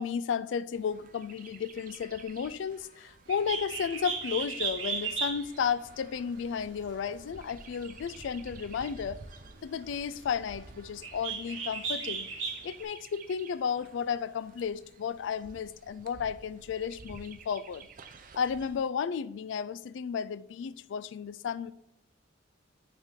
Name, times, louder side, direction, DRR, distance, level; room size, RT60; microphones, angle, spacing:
voice 1, 0.0-9.2 9.6-12.3 12.6-17.9 18.3-21.7, left 7 dB, 70° left, 0.3 m, -33 dB
Chirp tweet, 0.7-18.8, right 4 dB, 45° right, 0.6 m, -52 dB
Bird, 3.3-12.8, right 5 dB, 85° right, 1.2 m, -37 dB
9.0 x 3.6 x 3.7 m
head